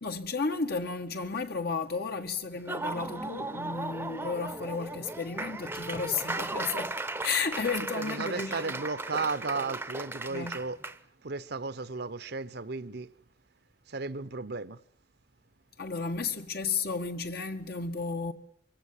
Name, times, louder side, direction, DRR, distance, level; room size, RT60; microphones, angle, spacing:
voice 1, 0.0-8.7 10.3-10.6 15.8-18.3, left 4 dB, 60° left, 1.8 m, -33 dB
Laughter / Applause, 2.5-11.0, right 2 dB, 10° right, 0.9 m, -36 dB
voice 2, 7.8-10.8 11.2-13.1 13.9-14.8, right 4 dB, 65° right, 1.0 m, -34 dB
24.0 x 17.0 x 9.9 m
head